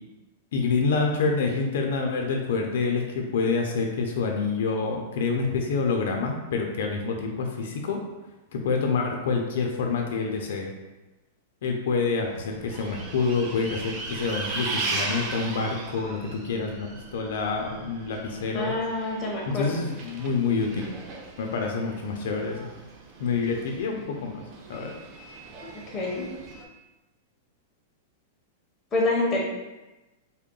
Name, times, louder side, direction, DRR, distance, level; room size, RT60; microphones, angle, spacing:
voice 1, 0.5-8.0 8.5-10.7 11.6-18.8 19.5-20.9 21.4-22.7 23.2-24.4 24.7-25.0, left 4 dB, 70° left, 2 dB, 0.5 m, -27 dB
Bus, 12.2-26.6, right 3 dB, 30° right, 0.5 m, -38 dB
voice 2, 18.5-19.8 25.7-26.2 28.9-29.4, left 2 dB, 15° left, -3 dB, 0.8 m, -27 dB
3.6 x 2.1 x 3.7 m, 1.1 s
supercardioid pair, 160°, 0 cm